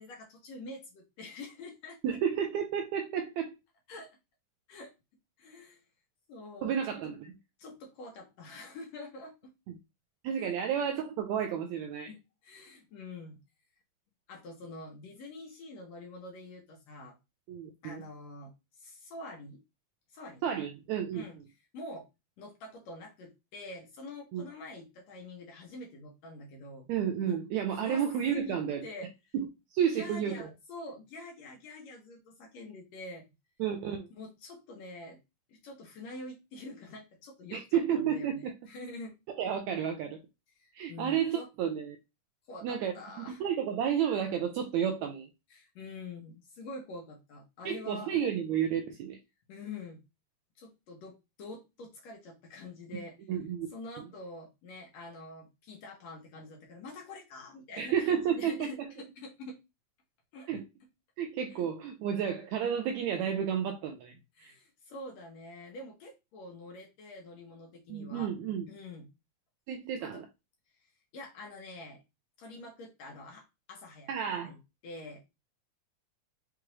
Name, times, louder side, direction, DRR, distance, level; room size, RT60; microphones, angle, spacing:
voice 1, 0.0-2.2 3.9-4.2 4.7-4.9 5.4-5.8 6.3-7.1 7.6-9.3 10.4-10.6 12.1-13.4 14.3-17.2 17.8-18.5 18.8-19.6 20.1-20.5 21.1-21.4 21.7-22.1 22.4-26.9 27.2-27.4 27.7-28.0 28.3-28.6 28.8-29.1 29.9-33.3 34.1-35.2 35.5-39.2 40.6-41.5 42.5-43.4 45.5-48.1 49.5-50.0 50.6-53.2 53.7-59.6 60.3-60.5 61.5-61.7 64.4-68.3 68.7-69.1 70.0-70.2 70.8-72.0 72.4-74.6 74.8-75.2, left 2 dB, 70° left, 1.8 m, -46 dB
voice 2, 2.0-3.5 6.6-7.3 10.2-12.1 17.5-18.0 20.4-21.2 24.3-24.4 26.9-28.8 29.3-29.5 29.7-30.5 33.6-34.1 37.5-38.5 39.4-40.2 40.7-42.0 42.6-45.3 47.6-49.2 53.3-53.7 57.8-58.9 60.5-60.6 61.2-64.1 64.4-64.5 67.9-68.6 69.7-70.2 74.1-74.5, right 8 dB, 80° right, 1.6 m, -31 dB
5.8 x 2.4 x 3.1 m
omnidirectional pair, 3.7 m